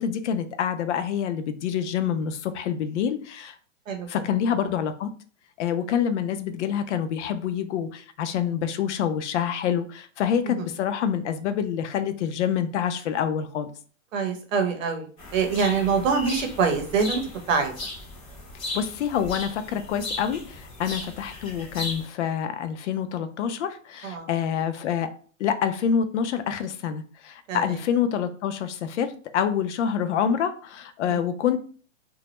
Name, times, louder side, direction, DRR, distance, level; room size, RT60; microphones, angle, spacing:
voice 1, 0.0-3.6 4.1-5.1 5.6-13.7 18.7-25.1 25.4-31.6, left 8 dB, 60° left, 10 dB, 0.5 m, -27 dB
voice 2, 14.1-17.2 17.5-17.7 24.0-24.3 27.5-27.8 31.1-31.2, right 5 dB, 70° right, 4 dB, 0.8 m, -25 dB
sound 1, 15.2-22.0, left 2 dB, 15° left, 0.5 m, -37 dB
2.2 x 2.0 x 2.9 m, 0.42 s
hypercardioid pair, 145°, 40 cm